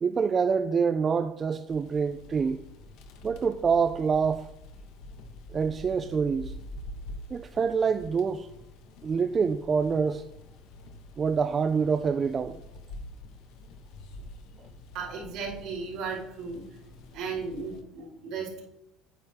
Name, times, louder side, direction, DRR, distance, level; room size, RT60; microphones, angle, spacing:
voice 1, 0.0-2.6 3.2-4.5 5.5-6.5 7.3-8.5 9.0-10.3 11.2-12.6, right 5 dB, 25° right, 0.3 m, -26 dB
sound 1, 1.7-17.8, left 1 dB, 60° left, 1.4 m, -46 dB
voice 2, 14.9-16.6 17.1-18.6, right 5 dB, 60° right, 4.1 m, -35 dB
9.6 x 9.4 x 3.5 m
cardioid pair, 155°, 0 cm